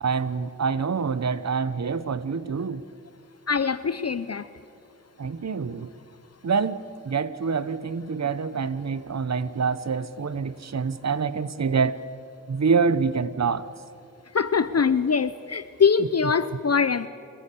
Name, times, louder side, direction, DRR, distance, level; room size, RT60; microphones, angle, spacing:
voice 1, 0.0-2.8 5.2-5.9 6.4-12.0 12.5-13.7 16.0-16.3, right 5 dB, 55° right, 15 dB, 0.9 m, -26 dB
voice 2, 3.5-4.5 14.3-17.1, left 6 dB, 50° left, 14 dB, 0.7 m, -23 dB
29.0 x 14.5 x 8.5 m, 2.4 s
cardioid pair, 50°, 33 cm